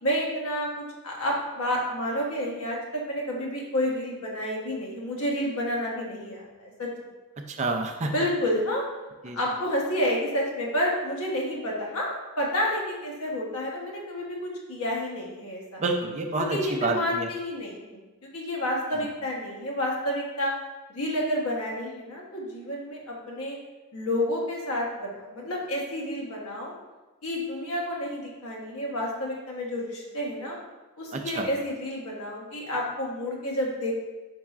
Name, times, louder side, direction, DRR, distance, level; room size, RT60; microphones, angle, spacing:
voice 1, 0.0-6.9 8.1-8.8 9.3-15.8 16.5-20.5 20.9-23.6 23.9-26.7 27.2-30.6 31.0-33.9, left 1 dB, 75° left, -2 dB, 1.0 m, -30 dB
voice 2, 7.5-8.1 9.2-9.4 15.8-17.3 31.1-31.5, right 3 dB, 30° right, 3 dB, 0.4 m, -28 dB
4.6 x 4.2 x 2.4 m, 1.2 s
head